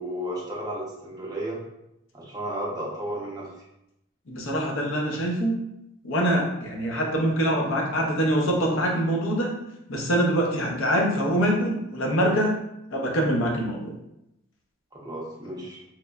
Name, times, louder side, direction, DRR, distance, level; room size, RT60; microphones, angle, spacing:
voice 1, 0.0-1.6 2.1-3.5 14.9-15.8, right 1 dB, 20° right, -4 dB, 0.5 m, -33 dB
voice 2, 4.3-5.5 6.0-9.5 9.9-12.6 12.9-13.9, right 1 dB, 75° left, 0 dB, 0.6 m, -24 dB
3.0 x 2.0 x 2.3 m, 0.85 s
head